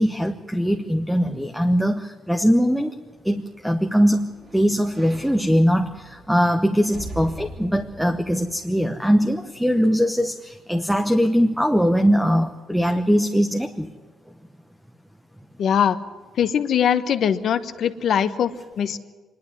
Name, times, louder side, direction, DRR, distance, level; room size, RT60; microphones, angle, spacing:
voice 1, 0.0-2.9 3.2-4.3 4.5-13.9, equal, ahead, 6 dB, 1.0 m, -21 dB
sound 1, 3.2-9.5 10.0-10.1, right 1 dB, 40° right, 3.5 m, -42 dB
voice 2, 15.6-16.0 16.4-19.0, left 8 dB, 65° left, 10 dB, 1.1 m, -21 dB
25.0 x 11.5 x 9.7 m, 1.4 s
cardioid pair, 90°, 0 cm